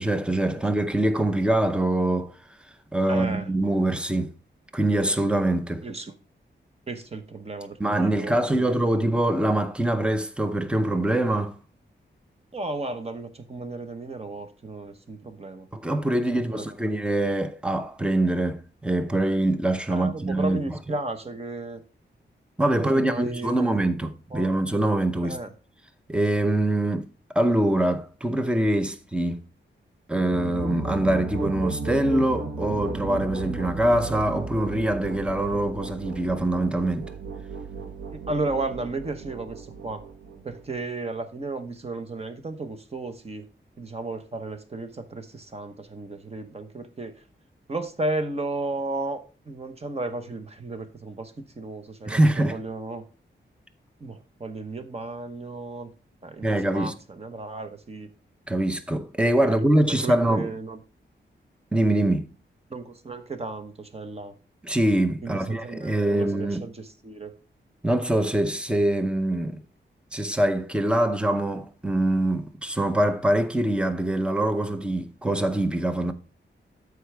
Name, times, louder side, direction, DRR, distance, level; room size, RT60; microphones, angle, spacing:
voice 1, 0.0-2.3 2.9-4.3 4.7-5.8 7.8-11.6 15.7-20.8 22.6-25.4 26.1-27.1 27.3-29.4 30.1-37.1 52.1-52.6 56.4-56.9 58.5-60.5 61.7-62.3 64.6-66.7 67.8-69.6 70.1-76.1, right 1 dB, 5° right, 0.6 m, -24 dB
voice 2, 3.1-3.5 5.8-6.1 6.9-8.7 12.5-15.7 16.3-16.6 19.9-21.8 22.7-23.8 24.3-24.5 25.2-25.5 38.1-40.0 40.4-43.5 43.8-47.1 47.7-53.0 54.0-55.9 56.2-58.1 59.9-60.8 62.7-64.3 65.2-67.3, right 2 dB, 30° right, 1.0 m, -34 dB
sound 1, 30.2-40.8, right 3 dB, 70° right, 1.1 m, -35 dB
13.0 x 4.7 x 3.4 m
wide cardioid pair, 165°, 19 cm